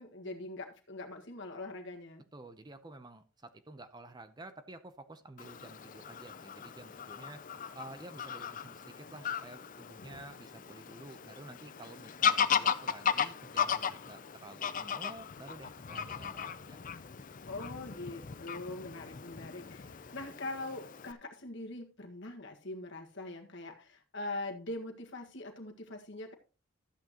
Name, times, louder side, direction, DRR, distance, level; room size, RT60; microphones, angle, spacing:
voice 1, 0.0-2.2 17.5-26.3, left 2 dB, 55° left, 3 dB, 1.7 m, -42 dB
voice 2, 2.3-7.4 7.7-16.8, right 2 dB, 20° right, 10 dB, 0.6 m, -51 dB
Fowl / Bird vocalization bird call bird song, 5.4-21.1, left 7 dB, 35° left, 0.5 m, -36 dB
13.0 x 8.8 x 2.9 m, 0.35 s
head